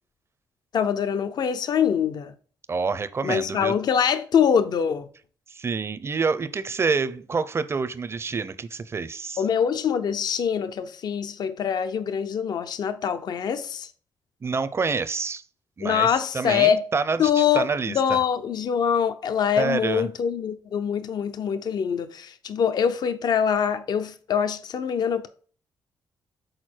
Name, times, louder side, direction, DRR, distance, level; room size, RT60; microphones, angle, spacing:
voice 1, 0.7-2.3 3.2-5.1 9.4-13.9 15.8-16.8 17.2-25.3, left 8 dB, 60° left, 0.5 m, -24 dB
voice 2, 2.7-3.7 5.5-9.4 14.4-15.4 15.8-18.2 19.6-20.1, right 4 dB, 35° right, 0.6 m, -27 dB
6.5 x 4.2 x 4.4 m
cardioid pair, 90°, 8 cm